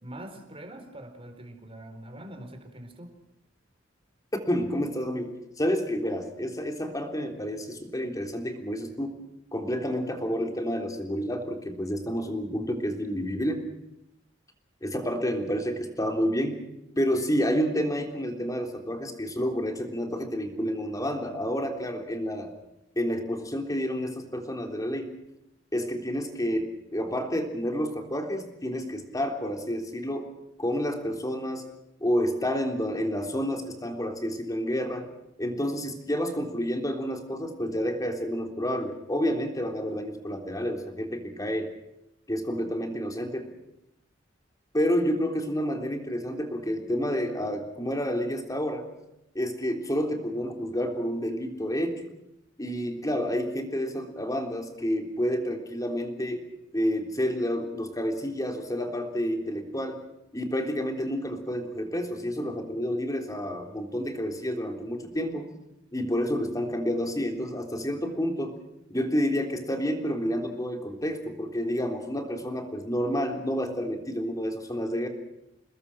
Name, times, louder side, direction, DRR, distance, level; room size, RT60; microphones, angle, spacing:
voice 1, 0.0-3.1, right 1 dB, 30° right, 6 dB, 4.2 m, -43 dB
voice 2, 4.5-9.2 9.5-13.7 14.8-16.6 17.0-22.5 23.0-25.1 25.7-30.3 30.6-31.6 32.0-35.1 35.4-41.7 42.3-43.5 44.7-48.9 49.4-52.0 52.6-56.4 56.7-60.0 60.3-65.5 65.9-68.6 68.9-75.1, equal, 20° left, 4 dB, 3.5 m, -29 dB
28.5 x 20.5 x 6.3 m, 0.85 s
head